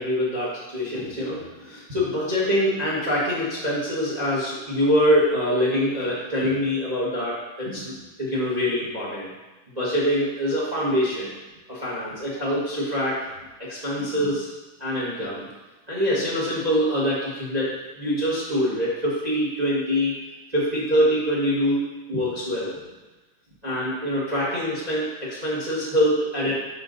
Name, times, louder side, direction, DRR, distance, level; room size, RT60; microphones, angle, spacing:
voice 1, 0.0-9.3 9.7-11.3 11.7-13.2 13.6-14.5 14.8-15.5 15.9-20.1 20.5-21.8 22.1-22.8 23.6-26.5, equal, 40° right, -7 dB, 0.5 m, -24 dB
6.2 x 5.8 x 4.0 m, 1.1 s
omnidirectional pair, 3.5 m